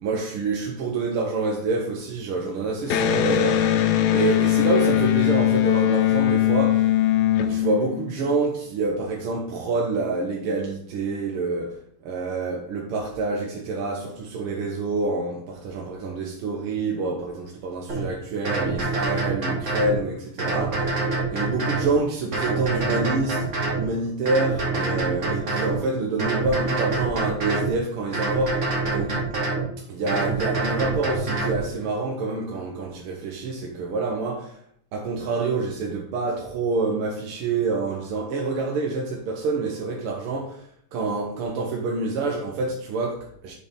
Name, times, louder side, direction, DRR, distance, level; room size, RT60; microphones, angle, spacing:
voice 1, 0.0-3.7 4.1-7.0 7.4-20.8 21.3-23.5 23.8-29.2 29.8-34.6 34.9-43.5, right 3 dB, 80° right, 1.8 m, -27 dB
Electric guitar, 2.9-8.4, left 11 dB, 70° left, 0.9 m, -21 dB
sound 1, 17.9-18.0 18.4-20.0 20.4-21.9 22.3-23.8 24.2-25.8 26.2-27.7 28.1-29.6 30.1-31.6, right 3 dB, 35° right, 2.0 m, -25 dB
7.6 x 4.0 x 5.0 m
omnidirectional pair, 2.4 m